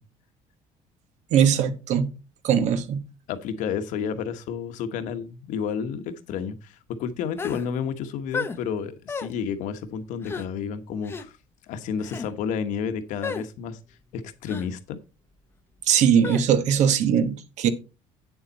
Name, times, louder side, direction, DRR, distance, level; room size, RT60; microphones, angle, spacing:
voice 1, 1.3-2.1 2.4-3.0 15.9-17.7, right 8 dB, 60° right, 1.1 m, -20 dB
voice 2, 3.3-11.4 11.7-13.8 14.1-15.0, left 7 dB, 75° left, 1.2 m, -31 dB
sound 1, 7.4-7.7 8.3-8.6 9.1-9.3 10.2-10.5 11.0-11.3 12.0-12.3 13.2-13.5 14.5-14.7 16.2-16.5, left 4 dB, 15° left, 0.7 m, -32 dB
8.7 x 7.2 x 4.1 m
cardioid pair, 155°, 13 cm